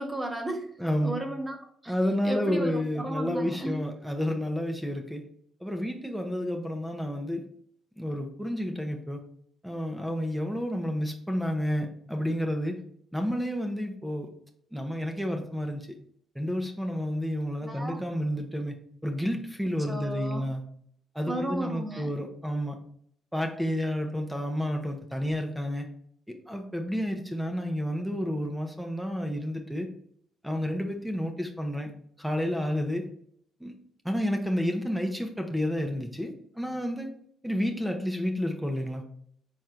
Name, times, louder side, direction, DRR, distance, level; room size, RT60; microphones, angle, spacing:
voice 1, 0.0-0.7 1.0-1.6 1.8-1.9 2.2-3.8 17.6-18.0 19.8-20.4 21.3-22.1, right 1 dB, 20° right, 3 dB, 1.1 m, -34 dB
voice 2, 0.8-1.2 1.9-5.2 5.6-7.4 8.0-9.2 9.6-12.8 13.1-14.3 14.7-15.9 16.3-18.8 19.0-20.6 21.1-22.8 23.3-25.9 26.3-29.9 30.4-31.9 32.2-33.1 33.6-33.7 34.0-37.1 37.4-39.0, equal, 5° right, 4 dB, 0.8 m, -30 dB
4.4 x 4.3 x 2.5 m, 0.66 s
hypercardioid pair, 55°, 0 cm